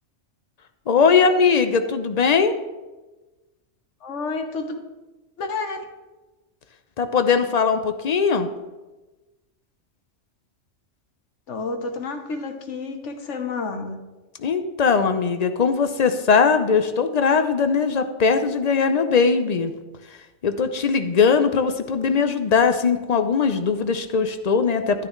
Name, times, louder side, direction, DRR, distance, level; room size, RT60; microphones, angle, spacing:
voice 1, 0.9-2.5 7.0-8.5 14.4-19.7 20.4-25.1, left 5 dB, 45° left, 8 dB, 0.5 m, -20 dB
voice 2, 4.0-4.8 5.4-5.8 11.5-14.0, left 3 dB, 75° left, 6 dB, 1.3 m, -30 dB
11.0 x 9.6 x 3.1 m, 1.1 s
omnidirectional pair, 1.2 m